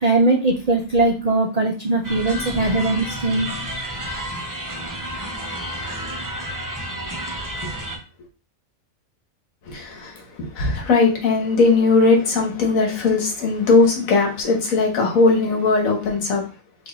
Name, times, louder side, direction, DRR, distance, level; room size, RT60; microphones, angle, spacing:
voice 1, 0.0-3.5, right 2 dB, 70° right, 0.3 m, -20 dB
sound 1, 2.0-8.0, equal, 20° right, 0.6 m, -30 dB
voice 2, 9.7-16.4, left 3 dB, 85° left, 1.6 m, -19 dB
4.8 x 2.6 x 3.9 m
omnidirectional pair, 1.4 m